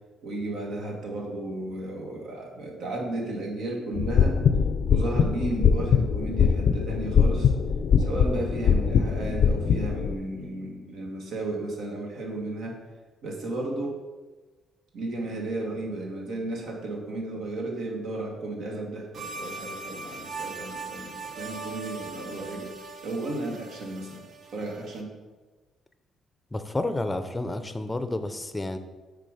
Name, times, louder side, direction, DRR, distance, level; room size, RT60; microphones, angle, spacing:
voice 1, 0.2-4.4 4.9-7.5 8.0-12.8 13.2-14.0 14.9-22.7 23.0-24.2 24.5-25.1, right 2 dB, 75° right, 0 dB, 1.5 m, -34 dB
sound 1, 4.0-10.1, left 6 dB, 65° left, 0.4 m, -22 dB
sound 2, 19.1-25.0, right 4 dB, 55° right, 0.6 m, -40 dB
voice 2, 26.5-28.8, left 2 dB, 15° left, 9 dB, 0.5 m, -30 dB
6.8 x 3.9 x 4.9 m, 1.2 s
cardioid pair, 90°, 0 cm